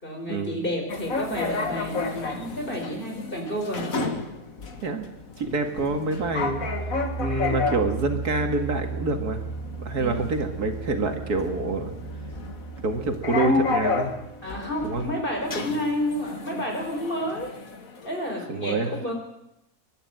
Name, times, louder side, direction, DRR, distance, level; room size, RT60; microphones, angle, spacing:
voice 1, 0.0-4.2 9.9-10.2 14.4-17.5 18.0-19.1, equal, 35° left, 2 dB, 5.2 m, -30 dB
sound 1, 0.9-18.4, left 3 dB, 60° left, 2.2 m, -32 dB
voice 2, 5.4-6.6 7.2-9.4 9.8-11.9 12.8-14.1 14.8-15.0 18.5-18.9, right 3 dB, 80° right, 5 dB, 2.6 m, -26 dB
sound 2, 5.8-15.4, right 5 dB, 85° left, 3.6 m, -36 dB
24.5 x 12.0 x 9.3 m, 0.85 s
omnidirectional pair, 1.7 m